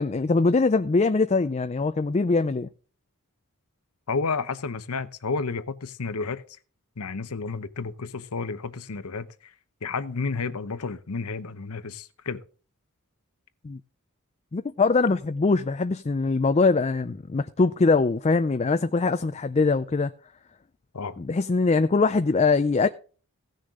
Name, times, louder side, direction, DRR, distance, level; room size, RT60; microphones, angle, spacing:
voice 1, 0.0-2.7 13.6-13.8 14.5-20.1 21.2-22.9, left 3 dB, 30° left, 0.4 m, -22 dB
voice 2, 4.1-6.4 7.0-9.3 9.8-12.4 20.9-21.2, left 4 dB, 85° left, 0.8 m, -31 dB
17.0 x 6.5 x 3.7 m
head